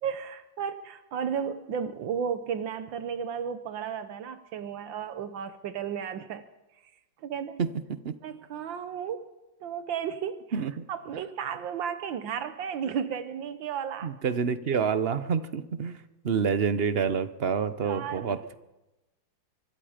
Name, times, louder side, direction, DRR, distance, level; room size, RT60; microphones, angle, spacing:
voice 1, 0.0-6.4 7.2-7.6 8.2-9.3 9.6-14.1 17.8-18.3, right 7 dB, 80° right, 10 dB, 1.7 m, -34 dB
voice 2, 7.6-8.2 10.5-10.8 14.0-16.0 16.2-18.5, right 6 dB, 45° right, 12 dB, 0.8 m, -28 dB
25.0 x 23.0 x 5.1 m, 1.0 s
omnidirectional pair, 2.0 m